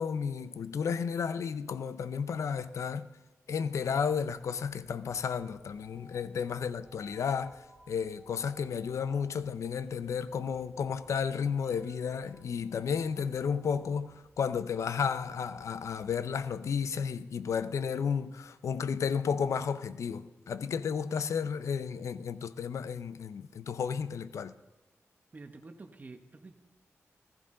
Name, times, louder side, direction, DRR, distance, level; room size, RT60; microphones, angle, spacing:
voice 1, 0.0-3.1 3.5-7.6 7.9-24.5, left 6 dB, 85° left, 0.5 m, -32 dB
sound 1, 3.8-17.0, right 1 dB, 15° right, 4.1 m, -60 dB
voice 2, 25.3-26.6, right 3 dB, 35° right, 0.9 m, -48 dB
15.0 x 14.0 x 3.7 m
wide cardioid pair, 120°, 5 cm